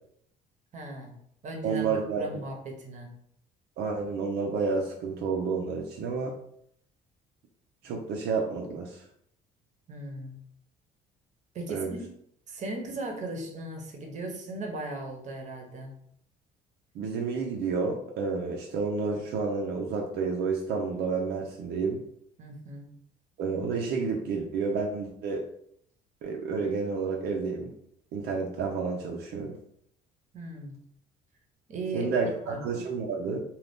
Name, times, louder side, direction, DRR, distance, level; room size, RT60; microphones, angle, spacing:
voice 1, 0.7-1.1 1.4-1.9 2.2-3.1 9.9-10.4 11.5-12.0 12.5-15.9 22.4-22.9 30.3-30.8 31.7-32.1 32.5-32.6, right 2 dB, 45° right, 2 dB, 0.8 m, -37 dB
voice 2, 1.6-2.3 3.8-6.3 7.8-9.0 11.7-12.0 16.9-22.0 23.4-25.4 26.2-27.7 28.1-29.6 31.9-33.4, right 4 dB, 75° right, -1 dB, 0.5 m, -30 dB
2.6 x 2.3 x 3.4 m, 0.69 s
cardioid pair, 110°, 17 cm